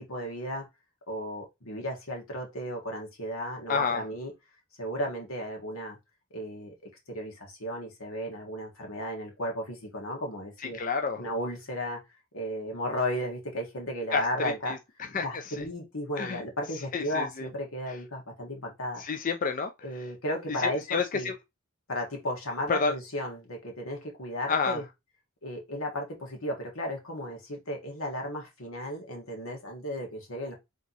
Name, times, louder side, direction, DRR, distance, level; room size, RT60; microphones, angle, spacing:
voice 1, 0.1-0.7 1.1-4.3 4.8-6.0 6.3-6.7 7.1-10.8 11.2-12.0 12.3-14.8 15.1-19.0 19.8-21.3 21.9-24.8 25.4-30.5, equal, 85° left, 1.7 m, -34 dB
voice 2, 3.7-4.0 10.7-11.2 14.1-14.8 15.1-15.6 16.2-16.4 16.9-17.5 19.0-19.7 20.6-21.3 22.7-22.9 24.5-24.8, left 5 dB, 40° left, 0.4 m, -29 dB
3.6 x 2.9 x 4.0 m
head